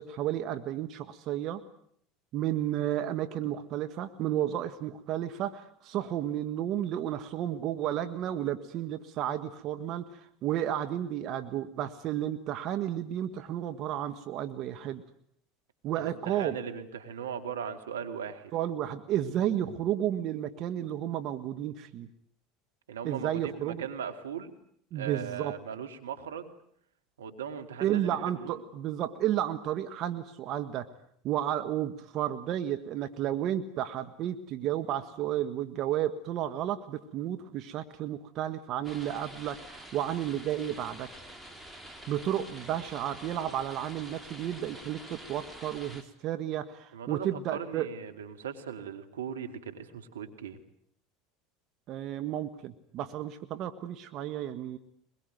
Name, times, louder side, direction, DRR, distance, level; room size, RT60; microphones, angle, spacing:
voice 1, 0.0-1.6 2.3-15.0 15.8-16.6 18.5-22.1 23.0-23.8 24.9-25.5 27.8-30.9 31.2-41.1 42.1-47.9 51.9-54.8, right 11 dB, 50° right, 10 dB, 1.5 m, -32 dB
voice 2, 15.9-18.5 22.9-24.5 24.9-26.5 27.2-28.6 46.9-50.6, right 7 dB, 85° right, 7 dB, 2.4 m, -39 dB
sound 1, 38.8-46.0, right 1 dB, 5° right, 3.7 m, -47 dB
23.0 x 22.0 x 9.3 m, 0.65 s
hypercardioid pair, 80°, 0 cm